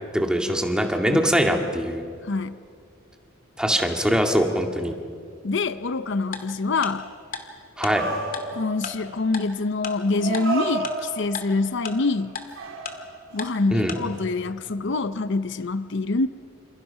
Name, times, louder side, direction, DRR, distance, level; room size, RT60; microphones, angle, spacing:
voice 1, 0.1-2.0 3.6-4.9 7.8-8.0 13.7-13.9, equal, 5° right, 3 dB, 2.1 m, -22 dB
voice 2, 2.2-2.6 5.4-7.1 8.5-12.4 13.3-16.3, left 3 dB, 60° left, 12 dB, 0.7 m, -25 dB
Tick-tock, 6.3-6.4 6.8-6.9 7.3-7.4 7.8-7.9 8.3-8.4 8.8-8.9 9.3-9.4 9.8-9.9 10.3-10.4 10.8-10.9 11.3-11.4 11.8-11.9 12.3-12.4 12.8-12.9 13.4-13.5 13.9-14.0, left 5 dB, 45° left, 2.4 m, -32 dB
sound 1, 7.8-8.9 10.1-11.4 11.9-12.3 12.6-13.5 14.1-14.2, right 3 dB, 85° right, 3.1 m, -31 dB
28.5 x 28.0 x 5.7 m, 2.2 s
head